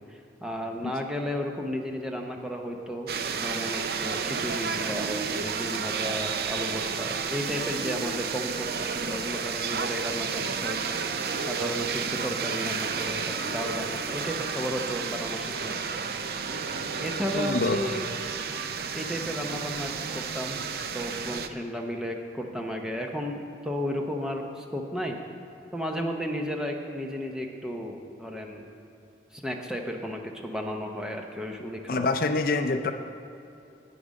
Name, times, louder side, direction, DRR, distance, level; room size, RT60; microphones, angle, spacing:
voice 1, 0.1-3.1 3.4-16.2 17.0-18.1 18.9-20.6 20.9-25.2 25.7-28.7 29.3-32.1, equal, 5° right, 2 dB, 0.7 m, -34 dB
sound 1, 3.1-21.5, right 5 dB, 55° right, 0.5 m, -31 dB
voice 2, 17.3-17.8 31.9-32.9, left 3 dB, 50° left, 7 dB, 0.4 m, -25 dB
9.8 x 8.6 x 5.2 m, 2.7 s
head